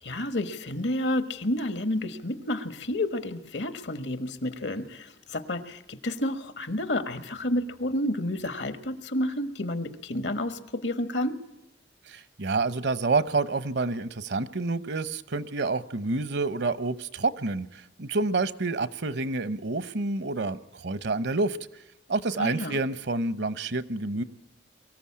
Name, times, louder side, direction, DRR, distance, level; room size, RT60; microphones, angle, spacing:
voice 1, 0.0-11.4 22.4-22.8, left 1 dB, 75° left, 12 dB, 1.4 m, -30 dB
voice 2, 12.1-21.6 22.1-24.2, right 3 dB, 70° right, 16 dB, 0.9 m, -28 dB
23.5 x 14.5 x 8.6 m, 0.88 s
head